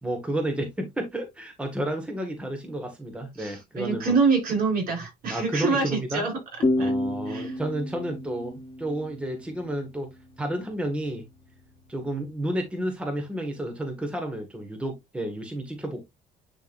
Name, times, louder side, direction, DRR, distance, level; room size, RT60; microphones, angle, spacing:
voice 1, 0.0-4.1 5.3-6.2 6.8-10.1 10.4-11.2 11.9-16.0, right 1 dB, 5° right, 1.7 m, -31 dB
voice 2, 3.4-6.4 6.8-6.9 7.3-7.6, right 4 dB, 60° right, 4.8 m, -25 dB
sound 1, 6.6-10.0, left 2 dB, 30° left, 1.7 m, -29 dB
10.5 x 3.6 x 2.6 m
cardioid pair, 110°, 17 cm